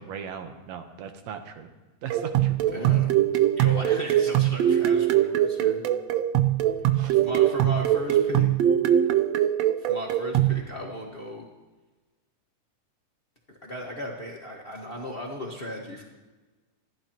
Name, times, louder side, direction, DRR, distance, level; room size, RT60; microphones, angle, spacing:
voice 1, 0.0-1.7 2.0-2.6 7.0-7.2, right 7 dB, 65° right, 6 dB, 2.0 m, -38 dB
sound 1, 2.1-10.6, right 11 dB, 85° right, 1.5 m, -22 dB
voice 2, 2.7-3.1 3.6-5.8 6.8-8.5 9.8-11.4 13.5-16.0, left 1 dB, 55° left, -1 dB, 0.6 m, -36 dB
26.5 x 11.5 x 2.9 m, 1.2 s
omnidirectional pair, 3.7 m